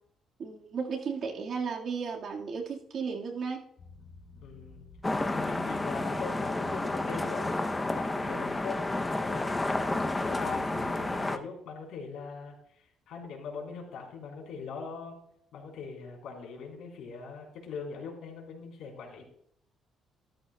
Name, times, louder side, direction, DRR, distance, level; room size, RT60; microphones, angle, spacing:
voice 1, 0.4-3.6, right 5 dB, 50° right, 0 dB, 1.7 m, -34 dB
sound 1, 3.8-11.2, left 3 dB, 50° left, 2.7 m, -50 dB
voice 2, 4.4-4.8 5.3-9.5 10.1-15.2 15.5-19.2, left 5 dB, 80° left, 0 dB, 3.8 m, -41 dB
sound 2, 5.0-11.4, left 2 dB, 15° left, 0.6 m, -31 dB
14.5 x 13.0 x 2.3 m, 0.69 s
cardioid pair, 135°, 0 cm